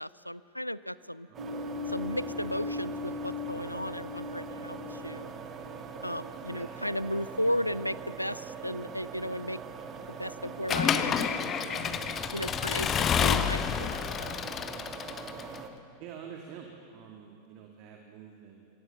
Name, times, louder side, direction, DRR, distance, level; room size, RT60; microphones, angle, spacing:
voice 1, 0.0-1.3 1.9-5.3 6.0-9.6 10.1-12.0 12.3-14.4, equal, 90° left, 19 dB, 0.4 m, -35 dB
sound 1, 1.3-15.7, right 5 dB, 25° right, 1.8 m, -43 dB
voice 2, 1.3-1.6 6.5-6.7 16.0-18.7, right 7 dB, 40° right, 2 dB, 2.0 m, -47 dB
sound 2, 1.4-6.4, left 4 dB, 75° right, 3.4 m, -39 dB
Accelerating revving vroom / Mechanisms, 10.7-15.6, left 7 dB, 25° left, 0.9 m, -29 dB
24.0 x 17.0 x 7.2 m, 2.4 s
figure-of-eight pair, 90°, 0 cm